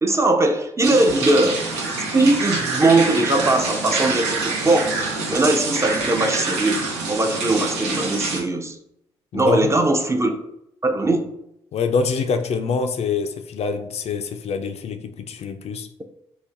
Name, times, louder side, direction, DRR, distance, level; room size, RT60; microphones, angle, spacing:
voice 1, 0.0-1.6 2.1-6.8 7.1-8.8 9.3-10.4 10.8-11.3, right 2 dB, 20° right, 5 dB, 0.5 m, -20 dB
sound 1, 0.8-8.4, right 3 dB, 85° right, 0.5 m, -26 dB
voice 2, 9.3-9.7 11.7-15.9, left 5 dB, 50° left, 7 dB, 0.4 m, -25 dB
4.0 x 2.1 x 2.5 m, 0.77 s
hypercardioid pair, 45°, 14 cm